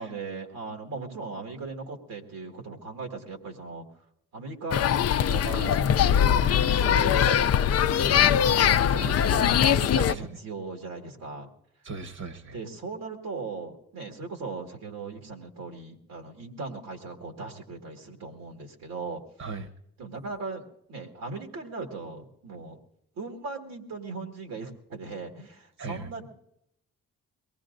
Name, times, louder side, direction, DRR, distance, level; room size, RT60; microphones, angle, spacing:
voice 1, 0.0-3.8 4.3-9.5 9.8-11.5 12.4-19.2 20.0-22.8 23.2-26.3, right 3 dB, 90° right, 2 dB, 1.9 m, -38 dB
sound 1, 4.7-10.1, left 9 dB, 50° left, 0.4 m, -22 dB
voice 2, 9.0-10.2 11.8-12.6 19.4-19.7 25.8-26.1, right 4 dB, 55° right, 9 dB, 1.1 m, -37 dB
23.0 x 19.0 x 2.6 m, 0.77 s
cardioid pair, 70°, 33 cm